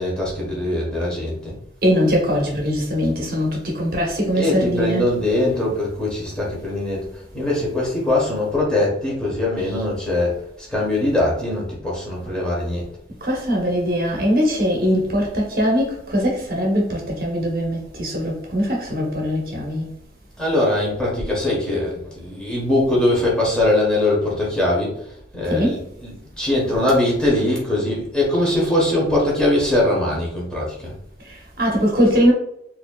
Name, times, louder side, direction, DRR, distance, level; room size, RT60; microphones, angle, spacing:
voice 1, 0.0-1.5 4.3-12.9 20.4-25.1 25.3-30.9, left 1 dB, 5° left, 1.1 m, -21 dB
voice 2, 1.8-5.1 13.2-19.9 25.4-25.8 31.3-32.3, equal, 50° right, 0.9 m, -21 dB
4.3 x 2.7 x 2.3 m
head